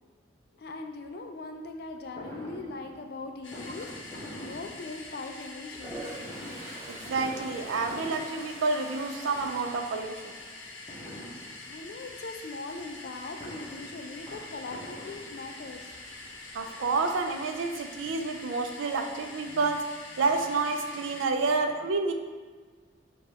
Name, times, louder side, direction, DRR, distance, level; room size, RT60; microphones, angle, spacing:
voice 1, 0.5-6.2 11.6-15.9 16.2-16.4, left 3 dB, 55° left, 4 dB, 0.4 m, -41 dB
Fireworks, 2.2-5.4 6.1-9.1 9.3-9.9 10.9-12.0 13.1-15.8 16.5-16.6 16.9-17.0 17.4-18.6 18.9-19.0 19.2-19.3, equal, 20° left, 0.8 m, -45 dB
sound 1, 3.4-21.3, left 2 dB, 85° left, 0.7 m, -45 dB
Toilet flush, 5.7-10.9 11.3-11.7 16.1-16.2 16.5-17.3, right 2 dB, 15° right, 0.5 m, -45 dB
voice 2, 6.9-10.3 16.5-19.9 20.2-22.1, right 3 dB, 90° right, 5 dB, 0.4 m, -29 dB
6.7 x 2.3 x 2.8 m, 1.5 s
head